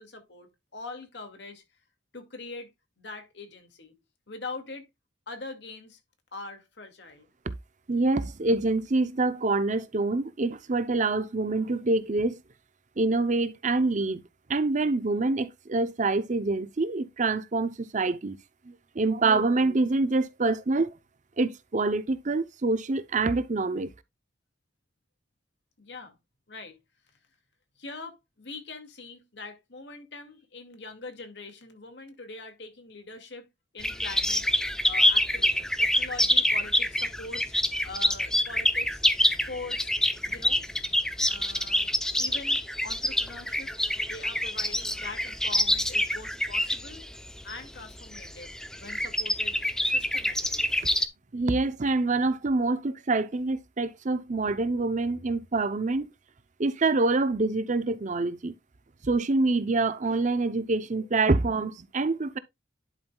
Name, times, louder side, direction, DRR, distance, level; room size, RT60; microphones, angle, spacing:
voice 1, 0.0-1.6 2.1-2.7 3.0-4.0 4.3-4.9 5.3-6.0 6.3-7.3 25.8-26.2 26.5-26.8 27.8-33.5 33.7-34.4 34.9-37.4 37.8-39.0 39.3-39.9 40.2-40.6 41.3-43.8 44.0-47.1 47.4-48.5 48.8-50.7, left 3 dB, 70° left, 2.2 m, -42 dB
voice 2, 7.9-12.4 13.0-14.2 14.5-18.4 18.7-20.9 21.4-23.9 51.3-56.1 56.6-58.5 59.0-62.4, right 3 dB, 45° right, 0.7 m, -26 dB
sound 1, 33.8-51.1, left 1 dB, 5° left, 0.6 m, -26 dB
11.0 x 5.5 x 2.3 m
head